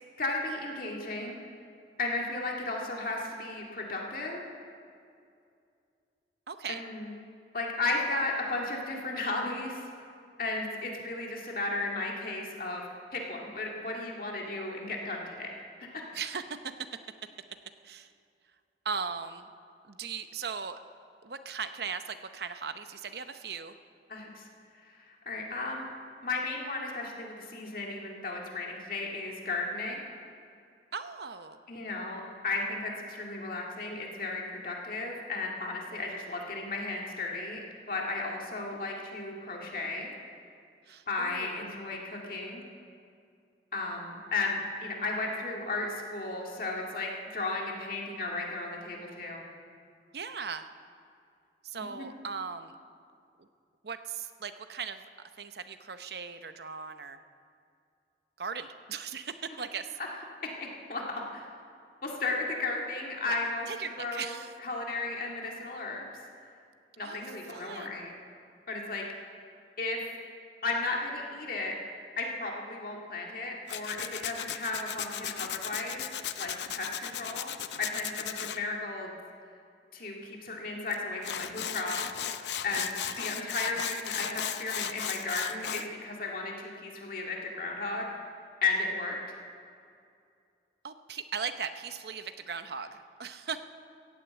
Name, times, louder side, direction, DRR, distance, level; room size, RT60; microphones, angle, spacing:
voice 1, 0.2-1.4 2.0-4.5 6.7-7.1 7.5-9.9 10.4-15.5 15.9-16.1 24.1-24.5 24.8-25.9 26.2-30.0 31.7-40.1 41.1-42.6 43.7-49.4 51.7-52.1 60.0-60.1 60.6-61.0 61.3-61.5 62.0-63.7 64.0-64.3 64.6-66.1 67.0-68.1 68.7-69.1 69.8-70.0 70.6-71.7 72.2-76.1 76.4-79.1 79.9-82.0 82.6-88.1 88.6-89.2, left 3 dB, 50° left, -1 dB, 2.0 m, -34 dB
voice 2, 6.5-6.8 16.1-16.4 17.8-18.1 18.8-19.5 19.8-20.8 21.2-23.8 30.9-31.6 40.9-41.7 50.1-50.7 51.6-52.7 53.4-53.5 53.8-55.0 55.4-57.2 58.4-60.0 63.2-63.4 63.7-64.5 67.0-68.0 82.7-82.9 83.2-83.5 90.8-93.6, right 6 dB, 65° right, 10 dB, 0.7 m, -38 dB
Tools, 73.7-78.6 80.9-81.0 81.2-85.9, left 10 dB, 80° left, 0.6 m, -36 dB
15.0 x 8.9 x 8.7 m, 2.4 s
head